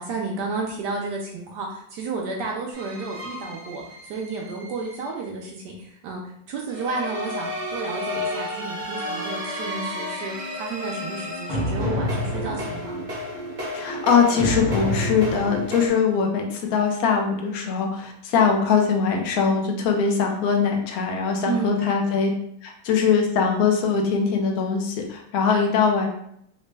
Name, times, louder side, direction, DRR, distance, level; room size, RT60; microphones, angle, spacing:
voice 1, 0.0-6.2 6.5-13.0 21.5-21.9, right 4 dB, 70° right, -1 dB, 1.1 m, -32 dB
sound 1, 2.7-5.0 6.7-15.9, left 1 dB, 35° right, 0.8 m, -30 dB
voice 2, 13.7-22.3 22.6-26.1, left 6 dB, 75° left, 2 dB, 0.8 m, -22 dB
3.9 x 2.1 x 3.2 m, 0.70 s
omnidirectional pair, 2.1 m